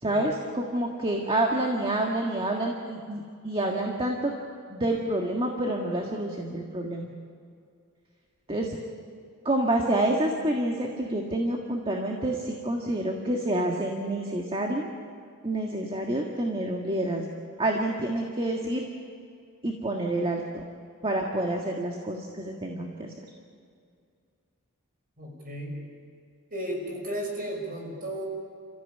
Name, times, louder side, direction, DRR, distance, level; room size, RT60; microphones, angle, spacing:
voice 1, 0.0-4.3 4.7-7.1 8.5-8.7 9.5-14.9 15.4-17.3 17.6-18.9 19.6-20.6 21.0-23.1, right 1 dB, 25° right, 1 dB, 1.7 m, -28 dB
voice 2, 25.2-25.8 26.5-28.3, right 1 dB, 40° right, 1 dB, 5.8 m, -34 dB
29.5 x 15.0 x 9.2 m, 2.3 s
head